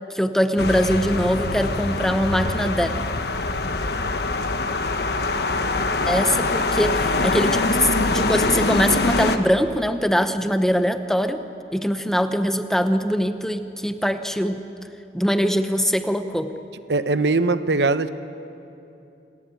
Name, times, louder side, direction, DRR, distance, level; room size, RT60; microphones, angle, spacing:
voice 1, 0.1-2.9 6.1-11.4 11.7-14.6 15.1-16.5, equal, 5° left, 8 dB, 0.9 m, -22 dB
sound 1, 0.6-9.4, left 3 dB, 65° left, 1.3 m, -23 dB
voice 2, 16.9-18.1, right 3 dB, 80° right, 12 dB, 1.0 m, -20 dB
28.5 x 19.5 x 9.4 m, 2.7 s
head